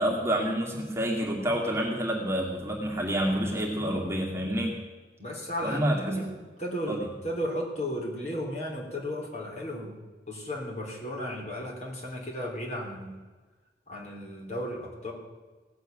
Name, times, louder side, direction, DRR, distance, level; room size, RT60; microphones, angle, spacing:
voice 1, 0.0-4.7 5.6-6.2 6.9-7.1, equal, 15° right, -2 dB, 2.5 m, -28 dB
voice 2, 5.2-7.0 7.2-10.0 10.3-13.2 13.9-15.1, equal, 40° left, -1 dB, 3.5 m, -34 dB
17.5 x 8.0 x 9.2 m, 1.3 s
head